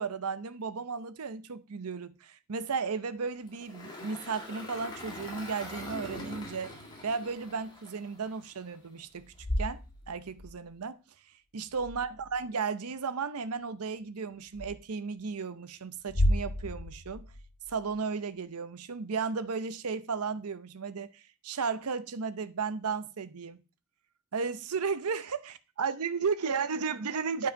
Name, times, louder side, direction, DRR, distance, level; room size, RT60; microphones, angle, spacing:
voice 1, 0.0-9.8 10.1-11.0 11.5-17.3 17.7-23.6 24.3-27.5, right 5 dB, 80° right, 0.7 m, -34 dB
Engine, 3.5-8.8, left 1 dB, 20° left, 2.0 m, -43 dB
sound 1, 9.2-10.6 11.7-12.4 14.5-14.7 16.0-18.0, left 1 dB, 80° left, 1.6 m, -32 dB
9.3 x 4.8 x 5.2 m
head